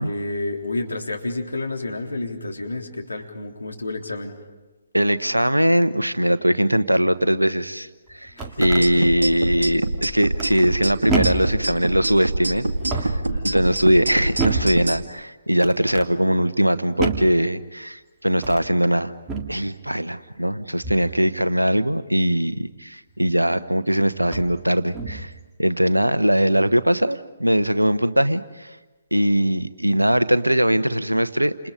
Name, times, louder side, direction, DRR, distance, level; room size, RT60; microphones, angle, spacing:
voice 1, 0.0-4.4 8.4-9.1 13.3-13.6, left 2 dB, 80° left, 2 dB, 3.6 m, -30 dB
voice 2, 4.9-12.7 12.9-19.1 19.5-25.3 25.6-28.7 29.1-31.7, equal, 90° right, 13 dB, 1.1 m, -21 dB
sound 1, 8.1-8.9 10.4-10.8 11.1-11.6 12.7-13.3 14.4-14.8 15.6-16.1 17.0-17.4 18.3-18.7 19.3-19.6 20.8-21.1 23.3-23.4 24.2-24.6 24.9-25.3, right 3 dB, 15° right, 1.9 m, -28 dB
sound 2, 8.6-15.0, right 1 dB, 70° right, 1.9 m, -25 dB
30.0 x 28.0 x 5.2 m, 1.2 s
figure-of-eight pair, 135°, 0 cm